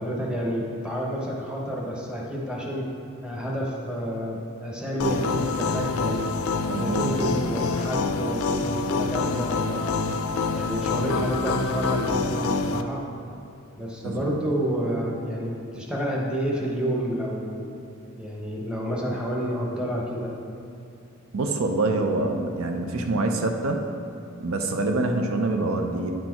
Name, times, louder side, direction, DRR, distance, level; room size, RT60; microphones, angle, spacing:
voice 1, 0.0-2.9 3.2-6.3 6.7-10.0 10.5-13.0 13.8-17.6 18.2-20.3, equal, 5° right, -3 dB, 0.9 m, -29 dB
sound 1, 5.0-12.8, left 4 dB, 90° left, 0.4 m, -26 dB
voice 2, 6.7-7.1 14.0-14.4 21.3-23.9 24.4-26.1, right 2 dB, 80° right, 4 dB, 0.6 m, -25 dB
9.4 x 4.4 x 4.4 m, 2.6 s
head